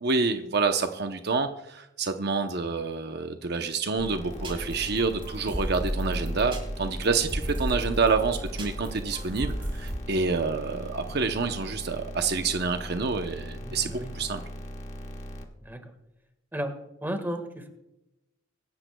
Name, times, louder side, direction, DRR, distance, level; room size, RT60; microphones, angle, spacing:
voice 1, 0.0-14.4, right 4 dB, 55° right, 6 dB, 0.8 m, -28 dB
sound 1, 4.0-15.4, equal, 35° left, 1.4 m, -39 dB
sound 2, 4.3-10.0, equal, 25° right, 3.4 m, -33 dB
voice 2, 13.6-14.1 15.6-15.9 16.5-16.8 17.0-17.7, equal, 10° right, 6 dB, 1.6 m, -34 dB
24.5 x 12.5 x 2.3 m, 0.90 s
head